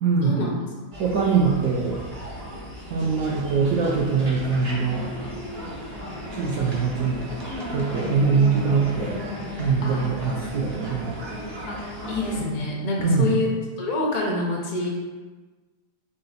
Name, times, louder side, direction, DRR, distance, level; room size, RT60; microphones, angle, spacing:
voice 1, 0.0-0.4 1.0-2.0 2.9-5.0 6.3-7.2 7.7-9.2 9.6-11.1 13.0-13.3, right 5 dB, 70° right, -3 dB, 0.9 m, -22 dB
sound 1, 0.9-12.4, equal, 35° right, 0.7 m, -35 dB
voice 2, 11.7-13.5 13.8-14.9, left 2 dB, 75° left, -2 dB, 0.3 m, -27 dB
4.0 x 3.3 x 4.0 m, 1.3 s
omnidirectional pair, 1.8 m